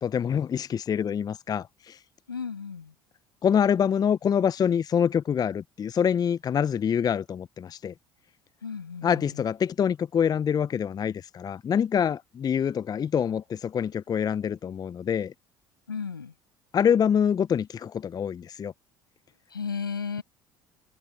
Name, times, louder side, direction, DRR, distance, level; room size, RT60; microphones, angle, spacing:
voice 1, 0.0-2.0 3.4-7.9 9.0-15.3 16.7-18.7, left 8 dB, 35° left, 0.7 m, -25 dB
voice 2, 2.3-2.9 8.6-9.3 15.9-16.3 19.5-20.2, left 6 dB, 90° left, 6.0 m, -34 dB
figure-of-eight pair, 60°, 11 cm